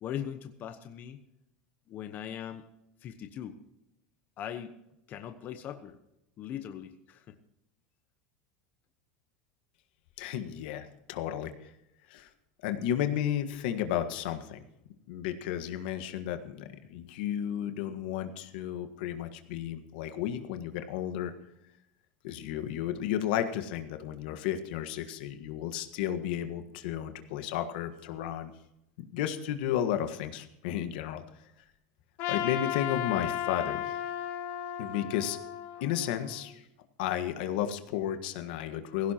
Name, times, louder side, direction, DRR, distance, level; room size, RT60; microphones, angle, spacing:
voice 1, 0.0-1.2 1.9-2.7 3.0-3.6 4.4-4.8 5.1-6.0 6.4-7.4, left 9 dB, 35° left, 7 dB, 1.1 m, -40 dB
voice 2, 10.2-11.7 12.1-12.3 12.6-14.6 15.1-21.3 22.2-28.5 29.0-31.2 32.3-34.0 34.8-35.4 35.8-36.6 37.0-39.1, left 10 dB, 70° left, 8 dB, 1.6 m, -33 dB
Trumpet, 32.2-36.5, left 11 dB, 55° left, 4.3 m, -35 dB
16.5 x 16.0 x 3.0 m, 0.84 s
supercardioid pair, 145°, 5 cm